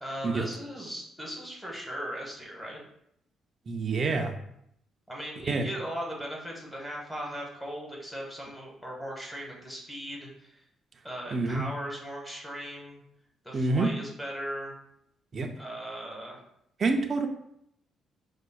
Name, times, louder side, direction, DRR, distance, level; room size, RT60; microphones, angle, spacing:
voice 1, 0.0-2.8 5.1-10.6 11.0-13.0 13.4-14.7 15.6-16.4, equal, 5° left, -2 dB, 1.1 m, -38 dB
voice 2, 3.7-4.3 5.5-5.7 11.3-11.7 13.5-13.9 15.3-15.5 16.8-17.3, right 3 dB, 45° right, 4 dB, 0.4 m, -27 dB
5.0 x 2.0 x 2.3 m, 0.74 s
cardioid pair, 90°, 0 cm